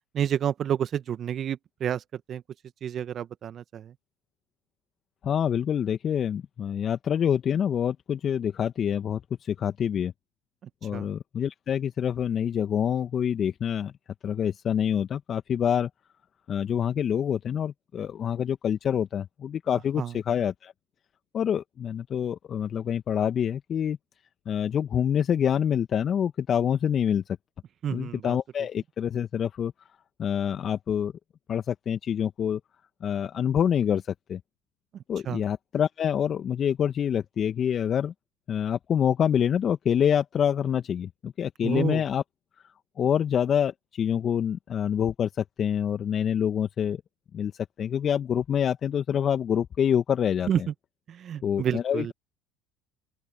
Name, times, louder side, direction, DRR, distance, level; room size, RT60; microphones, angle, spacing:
voice 1, 0.1-2.4 2.8-3.9 10.9-11.1 20.0-20.1 27.8-28.4 35.2-35.4 41.6-42.0 50.5-50.6 51.1-52.1, right 9 dB, 45° right, 1.5 m, -29 dB
voice 2, 5.2-10.1 10.8-13.9 14.2-15.9 16.5-20.7 21.3-24.0 24.4-27.2 27.9-29.7 30.2-31.1 31.5-32.6 33.0-34.4 35.1-38.1 38.5-42.2 43.0-47.0 47.3-50.7 51.4-52.1, left 8 dB, 45° left, 1.6 m, -26 dB
open air
hypercardioid pair, 70°, 0 cm